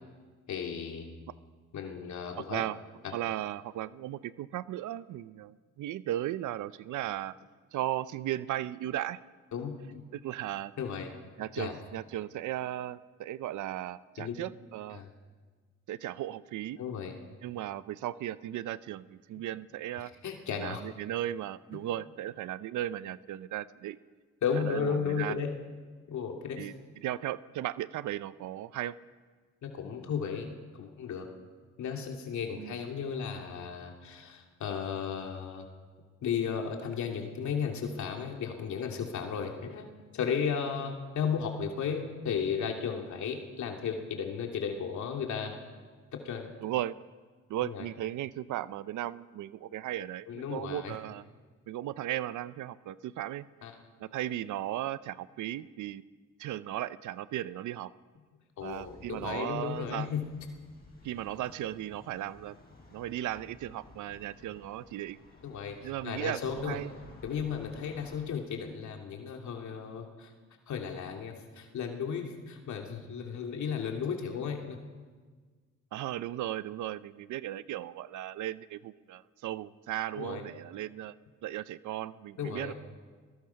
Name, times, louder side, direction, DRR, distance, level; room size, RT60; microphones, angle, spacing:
voice 1, 0.5-1.1 1.7-2.6 3.0-3.1 9.5-10.0 10.8-11.1 11.6-11.8 14.2-14.4 14.9-15.1 16.8-17.1 20.0-20.8 21.7-21.8 24.4-25.5 26.1-26.7 29.6-31.3 31.8-35.7 36.2-39.9 40.1-45.6 46.1-46.5 47.6-47.8 50.3-50.9 53.6-53.7 58.6-60.2 65.4-66.8 67.2-70.3 70.7-74.8 80.2-80.4 82.4-82.7, left 7 dB, 70° left, 2 dB, 2.8 m, -34 dB
voice 2, 2.4-2.8 3.1-7.3 7.7-9.2 10.1-10.7 11.4-15.0 15.9-16.8 17.4-20.1 20.6-24.0 24.6-25.4 26.6-26.7 27.0-28.9 32.6-32.7 46.6-47.0 47.5-51.2 51.7-53.5 54.0-56.0 56.4-57.9 58.6-60.1 61.0-62.6 62.9-65.2 65.8-66.9 75.9-81.1 81.4-82.7, right 13 dB, 80° right, 16 dB, 0.7 m, -36 dB
sound 1, 58.6-68.2, left 2 dB, 30° left, 7.6 m, -55 dB
22.5 x 20.5 x 5.8 m, 1.5 s
cardioid pair, 90°, 30 cm